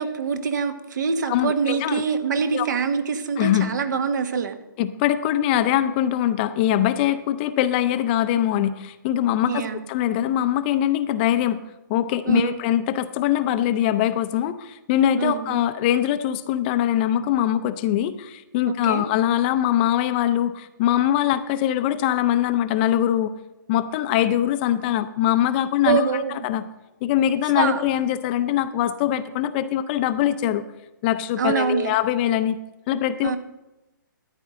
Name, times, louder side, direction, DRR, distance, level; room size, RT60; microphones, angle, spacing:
voice 1, 0.0-4.6 9.5-9.8 12.2-12.5 15.2-15.6 18.7-19.0 25.9-26.5 27.5-27.8 31.4-31.9 33.2-33.4, right 6 dB, 60° right, 9 dB, 1.3 m, -24 dB
voice 2, 1.3-2.0 2.5-2.7 3.4-3.7 4.8-11.6 11.9-23.3 23.7-26.6 27.0-30.6 31.0-32.6 32.9-33.4, left 11 dB, 30° left, 11 dB, 0.5 m, -22 dB
13.0 x 9.9 x 3.7 m, 0.99 s
hypercardioid pair, 145°, 11 cm